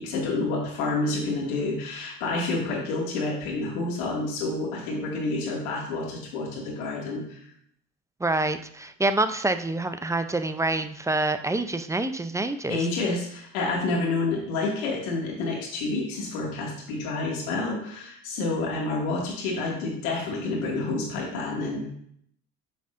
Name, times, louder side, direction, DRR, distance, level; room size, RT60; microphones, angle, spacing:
voice 1, 0.0-7.4 12.7-21.9, left 3 dB, 80° left, -2 dB, 2.2 m, -29 dB
voice 2, 8.2-12.9, right 2 dB, 5° right, 10 dB, 0.5 m, -26 dB
9.1 x 5.4 x 2.6 m, 0.68 s
hypercardioid pair, 65°, 42 cm